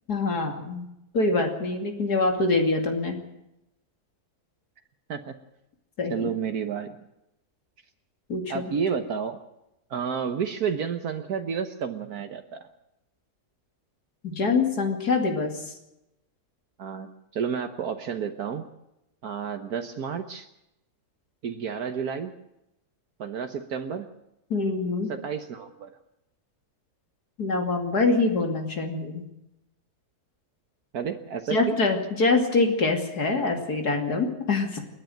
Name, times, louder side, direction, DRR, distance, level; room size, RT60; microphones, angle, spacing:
voice 1, 0.1-0.9 1.1-3.2 6.0-6.3 8.3-8.6 14.2-15.7 24.5-25.1 27.4-29.2 31.5-34.8, left 3 dB, 80° left, 4 dB, 3.2 m, -25 dB
voice 2, 6.1-7.0 8.5-9.4 9.9-12.7 16.8-18.6 19.2-20.5 21.4-22.3 23.2-24.1 25.1-25.9 30.9-31.8, right 7 dB, 70° right, 6 dB, 1.6 m, -31 dB
28.5 x 10.5 x 9.2 m, 0.88 s
omnidirectional pair, 1.7 m